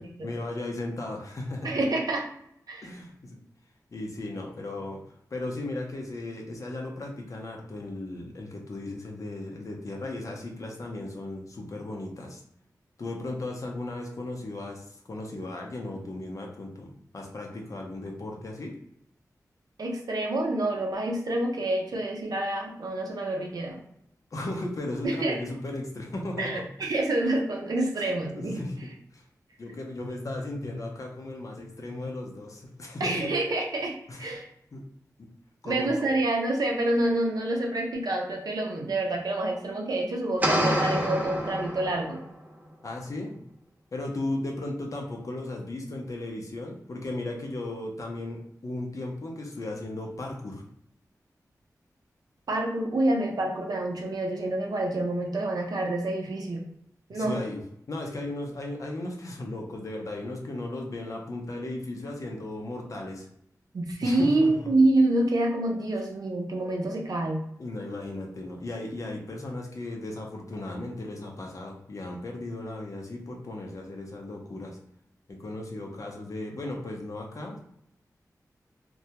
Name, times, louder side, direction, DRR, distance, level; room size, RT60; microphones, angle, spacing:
voice 1, 0.2-1.7 2.8-3.4 3.9-5.0 5.3-12.4 13.0-18.8 24.3-26.7 28.0-28.1 28.3-29.2 29.6-33.3 34.1-34.4 34.7-34.8 35.2-35.3 35.6-35.9 42.8-43.4 43.9-50.6 57.1-57.6 57.9-63.3 64.0-64.7 67.6-74.8 75.3-77.6, left 2 dB, 55° left, 0 dB, 0.6 m, -36 dB
voice 2, 1.6-2.2 2.7-2.9 19.8-23.8 25.0-25.4 26.4-28.9 33.0-34.4 35.6-42.2 52.5-56.6 57.1-57.4 63.7-67.4, right 2 dB, 70° right, 0 dB, 0.5 m, -27 dB
sound 1, 40.4-42.3, equal, 25° right, 0.5 m, -27 dB
2.2 x 2.0 x 2.8 m, 0.73 s
wide cardioid pair, 75°, 7 cm